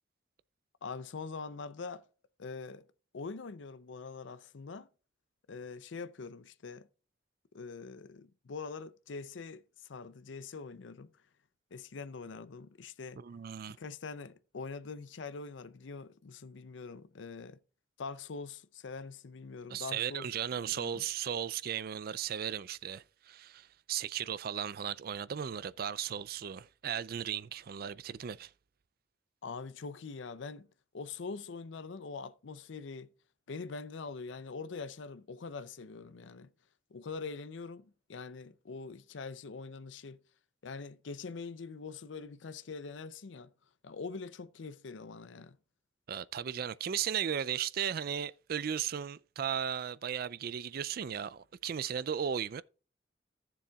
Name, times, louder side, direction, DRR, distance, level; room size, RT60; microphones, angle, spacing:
voice 1, 0.8-2.0 2.4-2.8 3.1-4.9 5.5-6.9 7.5-11.1 11.7-13.2 13.8-17.6 18.0-20.3 20.6-21.0 29.4-30.7 30.9-33.1 33.5-36.5 36.9-40.2 40.6-43.5 43.8-45.6, left 4 dB, 75° left, 0.5 m, -43 dB
voice 2, 13.2-13.8 19.7-28.5 46.1-52.6, right 8 dB, 50° right, 0.4 m, -36 dB
14.5 x 7.1 x 2.3 m
head